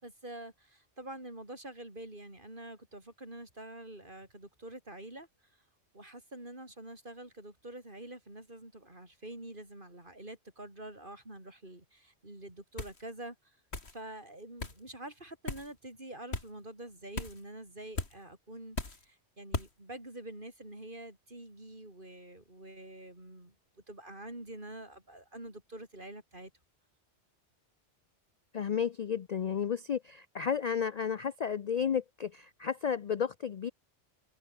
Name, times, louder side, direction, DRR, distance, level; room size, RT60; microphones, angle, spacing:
voice 1, 0.0-5.3 5.9-13.6 13.9-26.5, right 1 dB, 45° right, 5.8 m, -47 dB
sound 1, 12.8-13.0 13.7-14.0 14.6-14.8 15.5-15.7 16.3-16.5 17.2-17.4 18.0-18.1 18.8-19.0 19.5-19.7, left 3 dB, 65° left, 3.2 m, -37 dB
voice 2, 28.5-33.7, left 7 dB, 50° left, 0.5 m, -32 dB
omnidirectional pair, 1.2 m